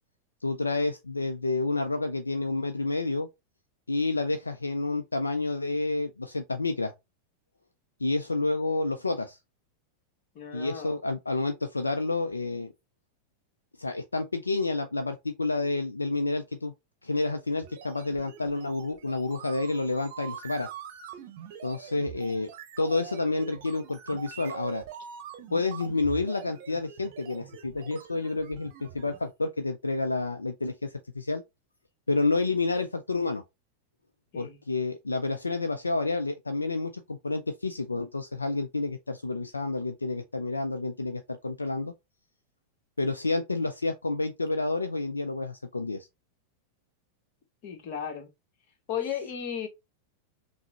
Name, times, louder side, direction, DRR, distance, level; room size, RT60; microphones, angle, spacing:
voice 1, 0.4-3.3 3.9-6.9 8.0-9.4 10.5-12.7 13.8-16.7 17.0-20.7 21.6-22.5 22.8-24.8 25.5-31.4 32.1-33.4 34.4-41.9 43.0-46.1, left 3 dB, 80° left, 0.4 m, -29 dB
voice 2, 10.3-11.0 34.3-34.6 47.6-48.3 48.9-49.7, left 8 dB, 45° left, 1.0 m, -34 dB
sound 1, 17.6-29.2, right 9 dB, 50° right, 0.7 m, -44 dB
5.7 x 2.0 x 2.8 m
figure-of-eight pair, 90°, 0 cm